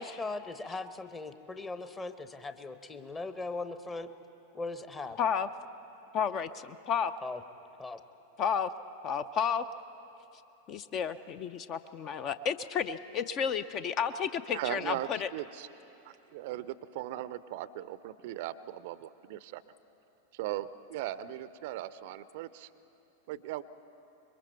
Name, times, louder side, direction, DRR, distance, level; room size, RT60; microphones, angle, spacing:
voice 1, 0.0-4.1 4.5-5.2 7.2-7.4 7.8-8.0, left 3 dB, 15° left, 10 dB, 0.9 m, -39 dB
voice 2, 5.2-5.5 6.1-7.1 8.4-8.7 9.0-9.6 10.7-15.3, left 7 dB, 35° left, 13 dB, 0.5 m, -31 dB
voice 3, 14.5-15.7 16.0-19.6 20.3-22.7 23.3-23.6, right 13 dB, 50° right, 16 dB, 0.5 m, -38 dB
26.5 x 22.0 x 4.5 m, 3.0 s
figure-of-eight pair, 90°, 0 cm